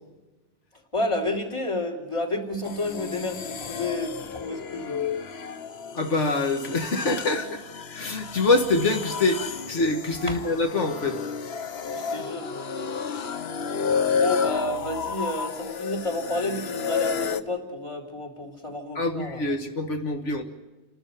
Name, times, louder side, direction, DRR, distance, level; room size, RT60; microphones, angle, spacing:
voice 1, 0.9-5.0 10.3-10.4 11.9-12.5 12.8-13.0 13.9-19.4, left 1 dB, 25° left, 3 dB, 3.4 m, -31 dB
sound 1, 2.6-17.4, left 6 dB, 60° left, 1.1 m, -31 dB
voice 2, 5.9-7.6 7.9-11.2 19.0-20.4, left 2 dB, 85° left, 5 dB, 2.1 m, -25 dB
29.5 x 12.5 x 9.3 m, 1.1 s
omnidirectional pair, 1.2 m